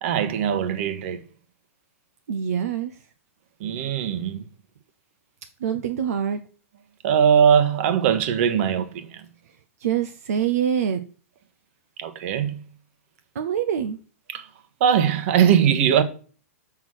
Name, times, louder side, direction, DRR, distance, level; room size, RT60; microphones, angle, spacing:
voice 1, 0.0-1.2 3.6-4.4 7.0-9.3 12.0-12.6 14.3-14.5 14.8-16.0, right 8 dB, 55° right, 1.3 m, -20 dB
voice 2, 2.3-3.0 5.6-6.4 9.8-11.0 13.3-14.0, right 8 dB, 70° right, 0.7 m, -25 dB
6.0 x 5.9 x 6.3 m
hypercardioid pair, 120°, 8 cm